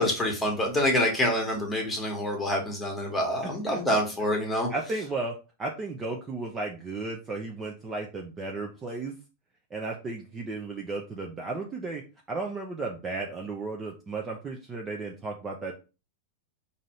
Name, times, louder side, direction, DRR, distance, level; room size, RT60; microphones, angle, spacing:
voice 1, 0.0-4.7, left 1 dB, 10° left, 1 dB, 1.3 m, -26 dB
voice 2, 3.4-4.0 4.7-9.1 9.7-12.0 12.3-15.7, right 3 dB, 20° right, 1 dB, 0.5 m, -34 dB
3.9 x 2.7 x 3.1 m, 0.31 s
supercardioid pair, 145°, 0 cm